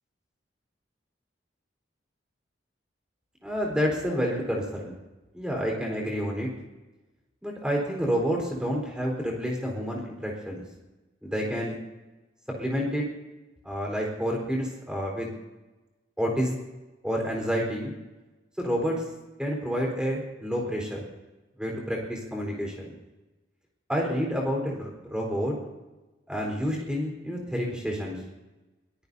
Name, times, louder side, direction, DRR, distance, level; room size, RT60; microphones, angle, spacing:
voice 1, 3.4-4.9 5.3-6.5 7.4-10.6 11.2-11.7 12.6-13.0 13.6-15.3 16.2-16.6 17.0-17.9 18.6-19.0 19.4-21.0 21.6-22.9 23.9-25.5 26.3-28.2, equal, 5° right, -1 dB, 4.3 m, -29 dB
24.0 x 17.5 x 2.8 m, 1.1 s
head